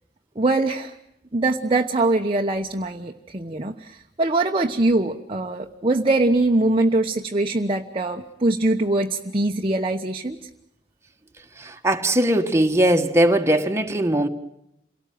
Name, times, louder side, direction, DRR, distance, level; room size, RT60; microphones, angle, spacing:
voice 1, 0.4-0.9 1.3-10.5, right 2 dB, 30° right, 2 dB, 1.1 m, -22 dB
voice 2, 11.6-14.3, right 1 dB, 15° right, 4 dB, 1.6 m, -20 dB
28.0 x 18.0 x 9.4 m, 0.80 s
head